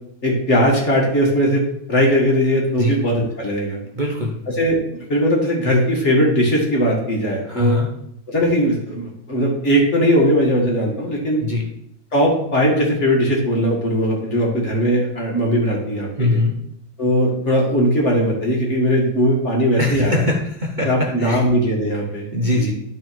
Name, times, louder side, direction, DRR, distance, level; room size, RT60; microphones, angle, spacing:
voice 1, 0.2-1.6 1.9-3.8 4.5-7.8 8.3-11.4 12.1-16.4 17.0-20.3 20.8-22.3 22.5-22.7, equal, 35° left, -2 dB, 2.1 m, -19 dB
voice 2, 3.9-4.4 7.5-7.9 11.4-11.7 16.2-16.5 19.8-20.9 21.2-21.4 22.3-22.7, left 2 dB, 90° right, -1 dB, 0.4 m, -21 dB
11.0 x 4.2 x 4.5 m, 0.74 s
omnidirectional pair, 2.3 m